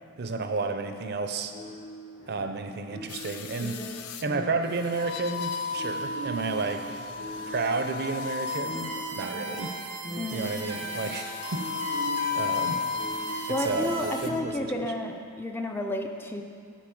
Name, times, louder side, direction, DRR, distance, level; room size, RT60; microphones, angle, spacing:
voice 1, 0.2-1.5 2.3-3.9 4.2-6.9 7.5-9.7 10.3-11.7 12.3-12.8 13.6-14.6, right 3 dB, 50° right, 7 dB, 0.6 m, -31 dB
sound 1, 1.5-15.1, equal, 55° left, 1.6 m, -41 dB
sound 2, 3.1-4.2 4.9-9.2 10.4-13.6 14.0-14.3, left 5 dB, 80° left, 0.5 m, -34 dB
sound 3, 8.5-14.4, right 3 dB, 90° right, 1.1 m, -37 dB
voice 2, 10.2-10.6 13.5-16.4, left 1 dB, 10° left, 3 dB, 0.4 m, -31 dB
8.5 x 5.1 x 7.7 m, 2.4 s
head